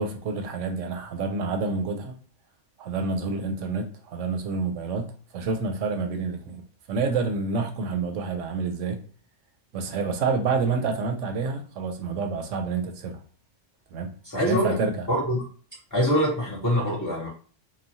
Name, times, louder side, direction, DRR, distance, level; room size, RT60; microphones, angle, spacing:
voice 1, 0.0-2.1 2.8-6.6 6.9-9.0 9.7-13.2 13.9-15.1, right 4 dB, 90° right, 0.9 m, -28 dB
voice 2, 14.2-14.7 15.1-15.4 15.9-17.3, equal, 25° left, 0.4 m, -24 dB
3.0 x 2.1 x 2.6 m
omnidirectional pair, 1.2 m